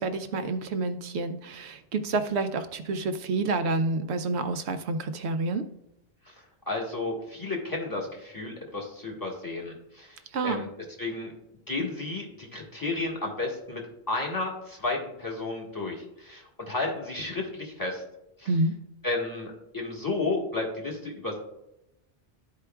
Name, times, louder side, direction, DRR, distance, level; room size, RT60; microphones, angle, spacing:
voice 1, 0.0-5.7 10.3-10.6 18.5-18.7, right 3 dB, 75° right, 9 dB, 0.9 m, -28 dB
voice 2, 6.7-10.7 11.0-11.3 11.7-13.8 14.1-18.0 18.4-18.5 19.0-21.4, left 2 dB, 20° left, -2 dB, 1.4 m, -32 dB
12.5 x 4.7 x 2.3 m, 0.88 s
omnidirectional pair, 1.1 m